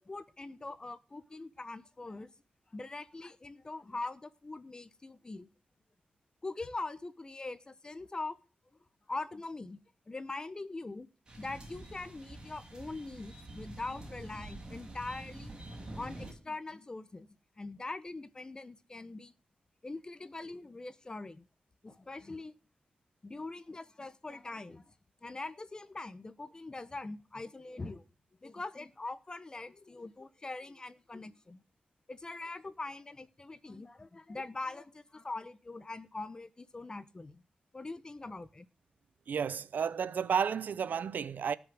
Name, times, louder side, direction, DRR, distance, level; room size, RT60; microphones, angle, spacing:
voice 1, 0.0-2.3 2.7-5.5 6.4-8.4 9.1-9.8 10.1-11.1 11.4-15.5 15.9-17.3 17.6-19.3 19.8-21.5 21.8-22.5 23.2-24.9 25.2-28.0 28.4-31.6 32.1-37.4 37.7-38.7, left 3 dB, 25° left, 0.9 m, -42 dB
sound 1, 11.3-16.3, right 1 dB, 25° right, 5.6 m, -47 dB
voice 2, 39.3-41.6, right 7 dB, 70° right, 0.7 m, -32 dB
18.0 x 6.2 x 6.2 m
wide cardioid pair, 130°, 3 cm